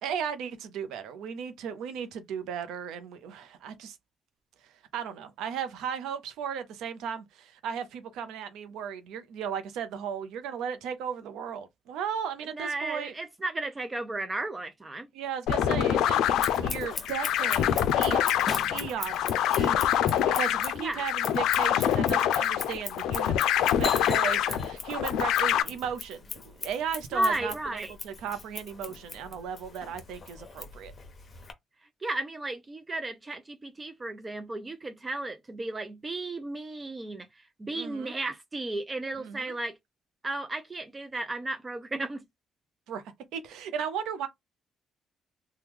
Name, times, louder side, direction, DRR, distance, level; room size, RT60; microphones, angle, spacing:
voice 1, 0.0-4.0 4.6-13.1 15.1-18.4 18.7-23.4 23.8-30.9 37.7-38.1 39.2-39.5 42.9-43.0 43.3-44.3, right 8 dB, 90° right, 0.6 m, -36 dB
voice 2, 12.5-15.1 20.8-21.0 27.1-27.9 32.0-39.8 40.2-42.2, right 2 dB, 25° right, 0.5 m, -34 dB
sound 1, 15.5-25.6, left 10 dB, 85° left, 0.4 m, -25 dB
Scissors, 16.2-31.5, left 4 dB, 40° left, 0.9 m, -40 dB
3.1 x 2.3 x 3.5 m
cardioid pair, 90°, 0 cm